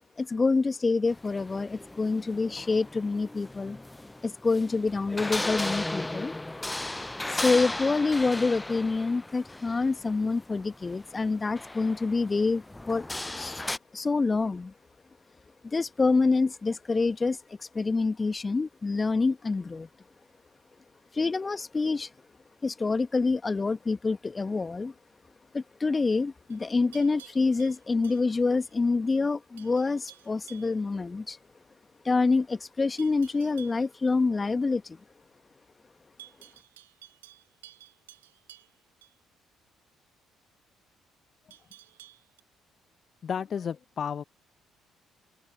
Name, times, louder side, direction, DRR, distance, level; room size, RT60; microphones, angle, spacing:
voice 1, 0.2-3.8 4.2-6.3 7.3-13.1 13.3-13.6 13.9-14.7 15.6-19.9 21.1-22.1 22.6-24.9 25.5-31.4 32.0-35.0, left 3 dB, 30° left, 1.7 m, -27 dB
sound 1, 1.1-13.8, left 1 dB, 15° left, 0.6 m, -36 dB
Livestock farm animals working animals, 26.5-28.7 29.1-29.3 29.6-30.8 33.0-33.9 36.2-39.1 41.5-42.4, right 14 dB, 80° right, 3.0 m, -53 dB
voice 2, 43.2-44.2, left 7 dB, 45° left, 0.7 m, -32 dB
open air
figure-of-eight pair, 45°, 0 cm